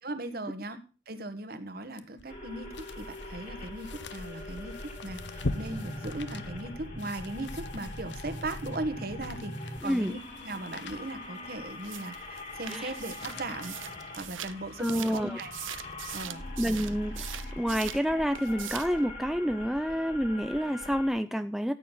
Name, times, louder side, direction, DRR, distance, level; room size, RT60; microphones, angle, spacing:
voice 1, 0.0-13.7 14.2-15.5 16.1-16.5, right 2 dB, 50° right, 10 dB, 1.4 m, -38 dB
sound 1, 2.0-14.6 15.1-15.2, left 3 dB, 65° left, 1.0 m, -44 dB
sound 2, 2.3-21.1, left 1 dB, 40° left, 3.2 m, -42 dB
voice 2, 9.8-10.1 12.7-12.9 14.8-15.4 16.6-21.7, equal, ahead, 8 dB, 0.5 m, -29 dB
sound 3, 11.8-18.1 18.3-19.0, right 12 dB, 90° right, 0.8 m, -42 dB
14.0 x 9.0 x 3.9 m, 0.32 s
head